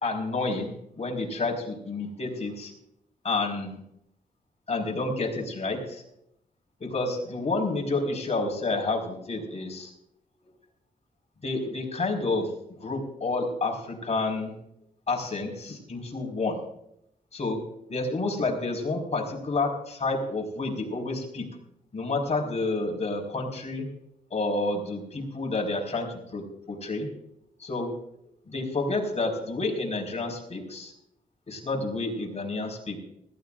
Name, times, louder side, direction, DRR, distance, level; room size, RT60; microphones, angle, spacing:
voice 1, 0.0-2.7 3.2-3.8 4.7-6.0 6.8-9.9 11.4-12.5 12.8-14.5 15.1-16.6 17.3-17.6 17.9-21.5 21.9-23.9 24.3-27.1 27.6-27.9 28.5-30.9 31.5-33.0, left 3 dB, 45° left, 0 dB, 4.8 m, -29 dB
20.5 x 16.0 x 2.5 m, 0.76 s
cardioid pair, 75°, 15 cm